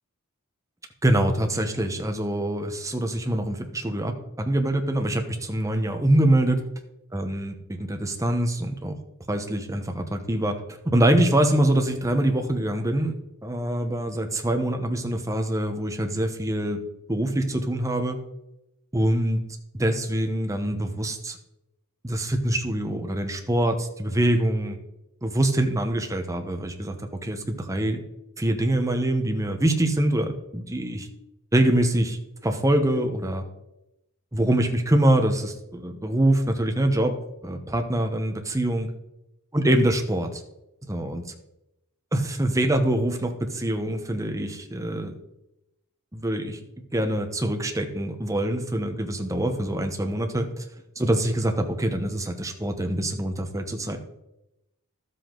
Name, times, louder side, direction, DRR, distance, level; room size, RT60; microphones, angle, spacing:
voice 1, 1.0-6.6 7.1-8.9 9.3-13.2 13.4-16.8 17.1-18.2 18.9-19.4 19.7-21.4 22.0-24.8 25.2-28.0 28.4-31.1 31.5-32.2 32.4-33.4 34.3-37.1 37.4-38.9 39.5-40.4 40.8-41.2 42.1-45.1 46.1-46.6 46.9-50.6 51.0-54.0, right 1 dB, 15° right, 4 dB, 1.0 m, -24 dB
12.5 x 7.7 x 3.8 m, 0.89 s
head